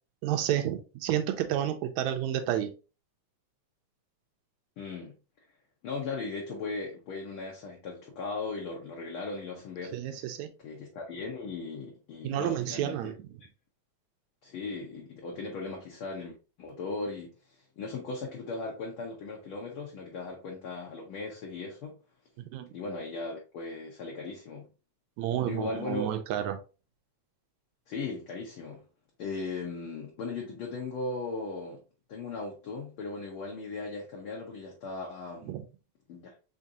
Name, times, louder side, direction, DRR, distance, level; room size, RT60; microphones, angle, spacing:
voice 1, 0.2-2.7 9.9-10.5 12.2-13.2 22.5-22.7 25.2-26.6 35.5-35.6, right 11 dB, 80° right, 1.9 m, -30 dB
voice 2, 4.8-5.1 5.8-10.2 10.6-13.0 14.4-17.3 17.8-22.0 22.7-24.7 25.4-26.1 27.9-28.8 29.2-31.8 32.1-35.5 36.1-36.3, left 3 dB, 60° left, 1.5 m, -37 dB
5.2 x 3.6 x 2.7 m
omnidirectional pair, 3.3 m